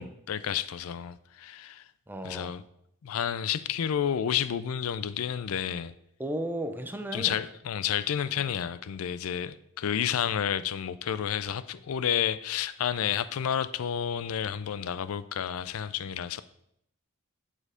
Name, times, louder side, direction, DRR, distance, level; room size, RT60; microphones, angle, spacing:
voice 1, 0.0-1.8 2.2-2.6 3.0-5.9 7.1-16.4, left 9 dB, 80° left, 0.4 m, -30 dB
voice 2, 2.1-2.6 6.2-7.4 8.4-8.5, right 1 dB, 10° right, 0.6 m, -35 dB
7.2 x 4.3 x 5.0 m
head